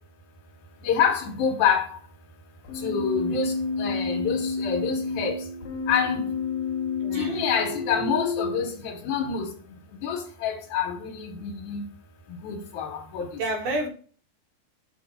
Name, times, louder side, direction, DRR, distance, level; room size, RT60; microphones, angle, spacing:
voice 1, 0.8-1.9 2.8-3.5 3.8-5.4 5.9-6.3 7.1-9.5 10.0-11.8 12.4-13.3, left 7 dB, 80° left, 2.3 m, -27 dB
Keyboard (musical), 2.7-8.6, left 4 dB, 65° left, 1.9 m, -30 dB
voice 2, 7.0-7.5 13.4-13.9, right 2 dB, 75° right, 2.5 m, -29 dB
6.3 x 2.9 x 5.4 m
omnidirectional pair, 3.6 m